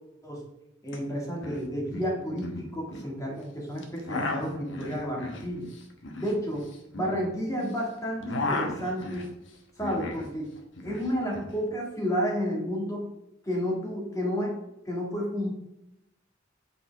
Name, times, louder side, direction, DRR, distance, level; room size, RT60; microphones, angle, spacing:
voice 1, 0.8-5.7 6.2-6.7 6.9-9.3 9.8-10.5 10.8-13.1 13.4-14.6 14.9-15.5, equal, 15° left, -2 dB, 1.8 m, -31 dB
sound 1, 0.9-1.0 1.2-1.6 1.9-3.1 3.8-7.7 8.0-10.3 10.6-11.5, left 2 dB, 65° left, 1.0 m, -35 dB
7.9 x 4.7 x 3.4 m, 0.86 s
head